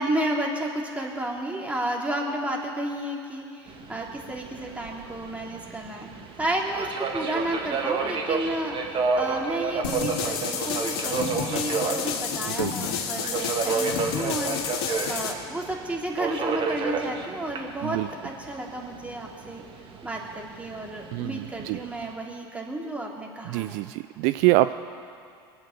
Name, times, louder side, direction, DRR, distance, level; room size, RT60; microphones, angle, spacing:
voice 1, 0.0-6.1 6.4-14.6 15.1-19.6 20.0-23.8, right 1 dB, 10° right, -1 dB, 3.0 m, -32 dB
Subway metro underground, 3.7-22.1, right 4 dB, 40° right, 1.9 m, -31 dB
sound 1, 9.8-15.3, left 7 dB, 70° left, 1.9 m, -30 dB
voice 2, 21.1-21.8 23.5-24.7, right 18 dB, 60° right, 13 dB, 0.4 m, -25 dB
23.0 x 8.8 x 6.7 m, 2.5 s
hypercardioid pair, 85°, 13 cm